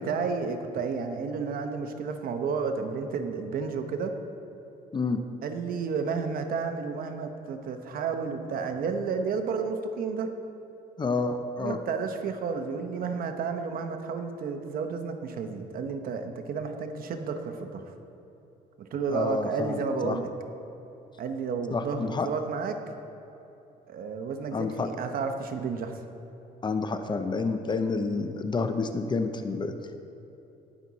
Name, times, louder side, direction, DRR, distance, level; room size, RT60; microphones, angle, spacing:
voice 1, 0.0-4.2 5.4-10.3 11.6-17.8 18.8-20.3 21.2-22.8 23.9-26.0, right 5 dB, 60° right, 6 dB, 1.0 m, -31 dB
voice 2, 4.9-5.2 11.0-11.8 19.1-20.2 21.7-22.3 24.5-24.9 26.6-29.7, left 4 dB, 25° left, 8 dB, 0.7 m, -29 dB
18.5 x 6.2 x 4.1 m, 3.0 s
cardioid pair, 110°, 17 cm